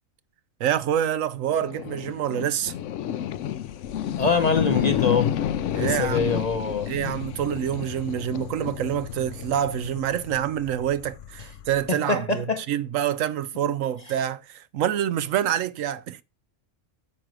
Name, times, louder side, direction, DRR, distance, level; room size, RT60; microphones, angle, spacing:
voice 1, 0.6-2.7 5.7-6.4 6.9-16.2, right 10 dB, 80° right, 1.0 m, -27 dB
sound 1, 1.5-11.9, left 10 dB, 70° left, 0.9 m, -31 dB
voice 2, 4.2-5.3 5.7-6.9 11.9-12.6, left 4 dB, 40° left, 0.7 m, -24 dB
8.7 x 4.6 x 6.3 m
omnidirectional pair, 1.4 m